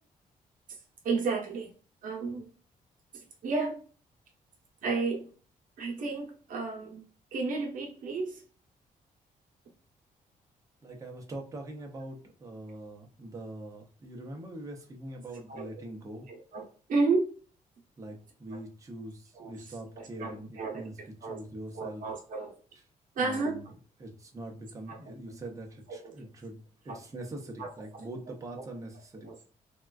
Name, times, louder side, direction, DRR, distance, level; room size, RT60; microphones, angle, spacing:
voice 1, 1.0-1.7 2.0-2.5 3.4-3.8 4.8-5.3 5.8-7.0 7.3-8.4 15.5-15.8 16.3-17.3 18.5-18.6 19.3-21.4 21.7-22.5 23.2-23.6 24.9-25.0 25.9-26.2 26.9-27.0 27.6-27.7 29.2-29.4, right 3 dB, 65° right, 0 dB, 0.8 m, -32 dB
voice 2, 10.8-16.3 18.0-20.9 21.2-22.1 23.2-23.6 24.0-29.3, right 1 dB, 20° right, 1 dB, 0.6 m, -43 dB
3.6 x 2.2 x 2.3 m, 0.40 s
wide cardioid pair, 170°, 15 cm